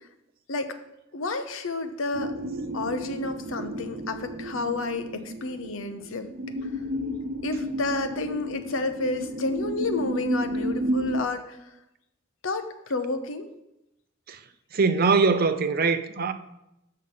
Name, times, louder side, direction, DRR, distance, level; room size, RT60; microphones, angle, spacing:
voice 1, 1.1-2.3 2.7-6.3 7.4-11.6 12.4-13.5, left 3 dB, 85° left, 0.9 m, -30 dB
sound 1, 2.1-11.2, right 1 dB, 80° right, 0.9 m, -32 dB
voice 2, 14.7-16.3, right 4 dB, 50° right, 0.6 m, -22 dB
7.4 x 6.5 x 5.5 m
head